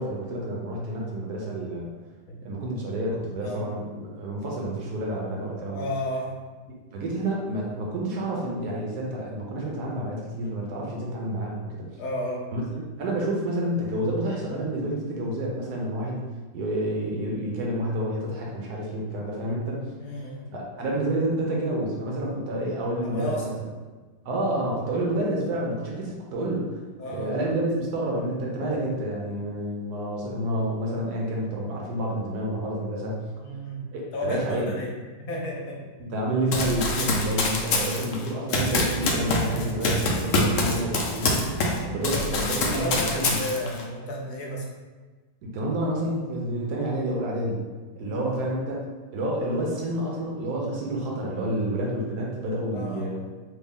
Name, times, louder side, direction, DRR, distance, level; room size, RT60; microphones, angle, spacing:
voice 1, 0.0-1.9 2.4-5.9 6.9-11.8 12.5-16.3 16.5-19.9 20.5-23.6 24.2-26.8 27.1-33.2 33.9-34.8 36.0-43.4 45.4-47.6 48.0-48.8 49.1-53.2, right 1 dB, 70° right, -2 dB, 1.1 m, -29 dB
voice 2, 2.3-2.7 3.4-3.7 5.7-6.3 12.0-12.4 20.0-20.5 22.9-23.5 27.0-27.4 33.4-34.9 35.2-35.8 41.8-42.1 42.7-44.7 47.9-48.3 52.7-53.1, left 1 dB, 65° left, -1 dB, 1.0 m, -33 dB
Run, 36.5-41.8 42.0-43.8, left 2 dB, 90° left, 0.6 m, -25 dB
3.3 x 2.3 x 3.5 m, 1.3 s
omnidirectional pair, 1.9 m